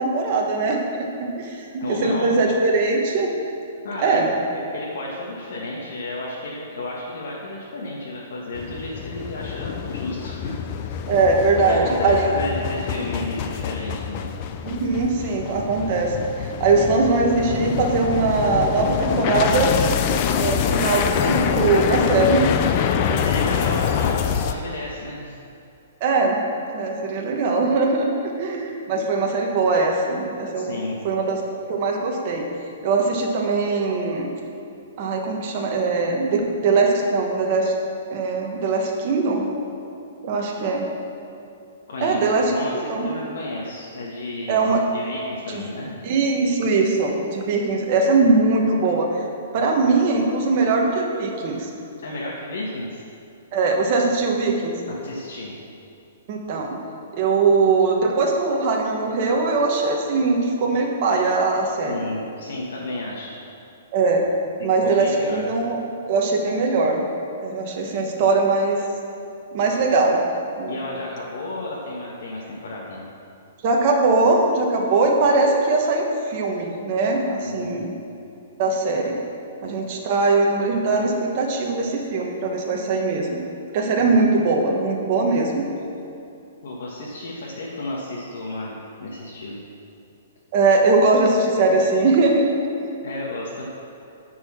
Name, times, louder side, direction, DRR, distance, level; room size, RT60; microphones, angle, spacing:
voice 1, 0.0-3.3 4.0-4.3 11.1-12.2 14.6-19.8 20.4-22.4 26.0-26.4 26.7-31.4 31.7-32.5 32.8-34.3 35.0-37.7 38.1-39.4 40.2-40.9 42.0-42.5 42.9-43.1 44.5-44.8 45.5-45.6 46.0-49.1 49.5-51.7 53.5-54.8 56.3-56.8 57.1-62.0 63.9-64.2 64.6-65.8 66.1-67.1 67.4-68.8 69.5-70.2 70.6-70.7 73.6-77.9 78.6-79.2 79.6-83.4 83.7-85.7 90.5-92.5, right 3 dB, 30° right, 0 dB, 1.2 m, -21 dB
voice 2, 1.8-2.4 3.8-4.2 4.5-10.5 10.8-11.0 11.7-14.3 23.1-25.4 30.5-31.1 41.9-45.9 52.0-53.0 54.9-55.5 61.9-63.4 64.6-65.5 70.7-73.1 77.4-77.9 86.6-88.7 89.0-89.6 93.0-93.6, left 2 dB, 65° left, -4 dB, 1.4 m, -32 dB
sound 1, 8.5-24.5, left 8 dB, 25° left, 0.4 m, -25 dB
10.5 x 4.7 x 7.3 m, 2.6 s
hypercardioid pair, 175°, 0 cm